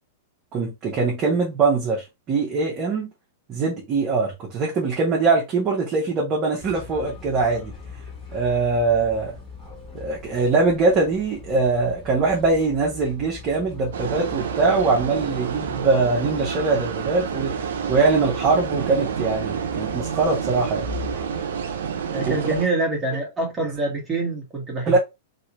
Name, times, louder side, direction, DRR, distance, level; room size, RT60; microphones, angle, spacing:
voice 1, 0.5-3.1 3.5-7.7 8.3-9.3 9.9-20.8 22.2-22.5 24.9-25.0, right 3 dB, 35° right, 1.2 m, -22 dB
sound 1, 6.6-21.4, left 4 dB, 5° left, 2.0 m, -40 dB
sound 2, 13.9-22.7, right 7 dB, 80° right, 0.6 m, -29 dB
voice 2, 22.1-25.0, right 2 dB, 15° right, 1.6 m, -26 dB
3.2 x 3.0 x 3.0 m
hypercardioid pair, 130°, 0 cm